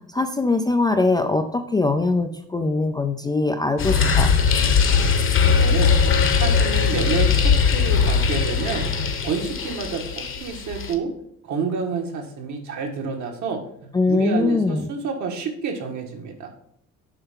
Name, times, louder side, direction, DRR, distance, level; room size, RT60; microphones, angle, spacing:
voice 1, 0.0-4.3 13.9-14.9, left 3 dB, 15° left, 6 dB, 0.3 m, -22 dB
sound 1, 3.8-10.9, left 6 dB, 40° left, 1.0 m, -20 dB
voice 2, 5.6-5.9 6.3-8.9 9.2-11.1 11.4-13.6 14.1-16.5, right 5 dB, 60° right, 3 dB, 1.7 m, -28 dB
7.9 x 5.5 x 3.7 m, 0.71 s
cardioid pair, 160°, 32 cm